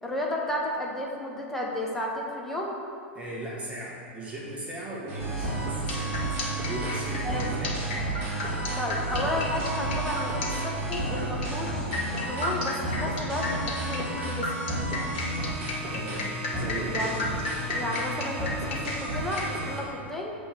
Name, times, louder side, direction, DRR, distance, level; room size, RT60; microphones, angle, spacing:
voice 1, 0.0-2.7 7.2-7.5 8.8-14.7 16.9-17.2 17.7-20.3, left 1 dB, 5° left, -3 dB, 1.1 m, -32 dB
voice 2, 3.1-6.4 6.7-8.1 15.9-17.4, right 1 dB, 20° right, -5 dB, 1.4 m, -37 dB
sound 1, 5.0-12.3, left 2 dB, 25° left, 0.7 m, -46 dB
sound 2, 5.1-19.8, right 2 dB, 40° right, 1.8 m, -32 dB
sound 3, 5.7-19.6, left 2 dB, 55° left, 1.1 m, -34 dB
6.8 x 3.5 x 5.8 m, 2.3 s
figure-of-eight pair, 90°, 7 cm